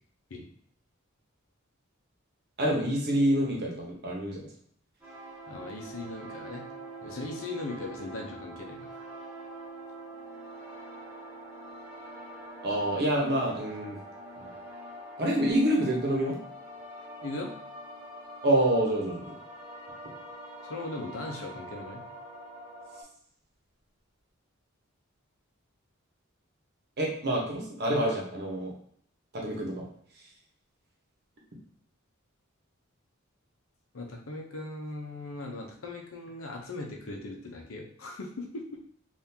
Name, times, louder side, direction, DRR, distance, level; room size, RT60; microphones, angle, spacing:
voice 1, 2.6-4.4 12.6-14.0 14.4-14.5 15.2-16.4 18.4-19.4 27.0-28.7 29.3-29.9 30.1-30.2, right 1 dB, 55° right, -2 dB, 1.1 m, -27 dB
sound 1, 5.0-23.0, right 1 dB, 10° right, 1.3 m, -44 dB
voice 2, 5.5-6.7 7.0-8.8 17.2-17.5 20.7-22.0 33.9-38.8, left 2 dB, 70° left, 1 dB, 0.7 m, -39 dB
3.6 x 2.6 x 2.8 m, 0.62 s
head